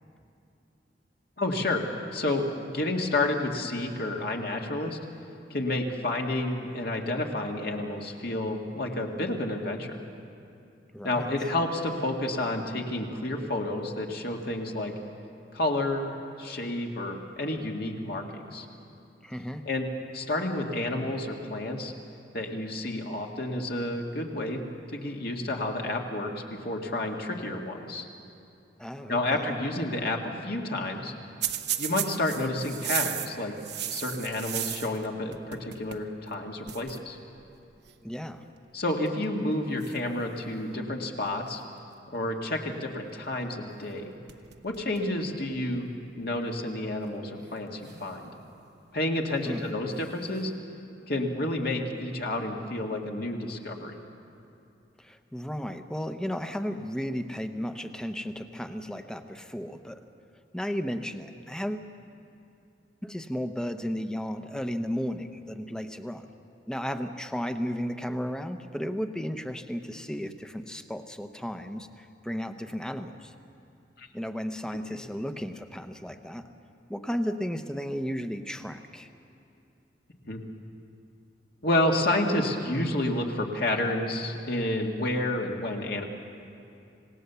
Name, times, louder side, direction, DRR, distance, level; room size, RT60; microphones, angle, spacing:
voice 1, 1.4-1.8 2.1-5.0 5.5-10.0 11.0-14.9 15.5-16.1 16.4-18.7 19.7-19.9 20.1-21.9 22.3-24.6 24.9-28.1 29.1-31.1 31.8-33.5 33.9-37.2 38.7-41.6 42.1-44.1 44.6-45.9 46.2-48.3 48.9-50.5 51.1-54.0 74.0-74.1 80.3-80.4 81.6-86.0, left 1 dB, 60° left, 1 dB, 2.0 m, -30 dB
voice 2, 10.9-11.3 19.2-19.7 28.8-29.6 38.0-38.4 49.4-49.6 55.0-60.0 60.5-61.9 63.0-66.3 66.7-73.3 74.1-76.5 76.9-79.1, equal, 5° left, 8 dB, 0.9 m, -34 dB
sound 1, 31.4-35.1 35.3-36.1 36.3-36.4 36.7-37.0 37.9-38.1 38.9-39.3 39.8-40.9 43.8-44.0 44.3-45.1 45.5-45.6 46.6-46.7 47.8-48.7 49.9-50.5, right 11 dB, 65° right, 1.0 m, -35 dB
26.5 x 18.0 x 6.9 m, 2.6 s
head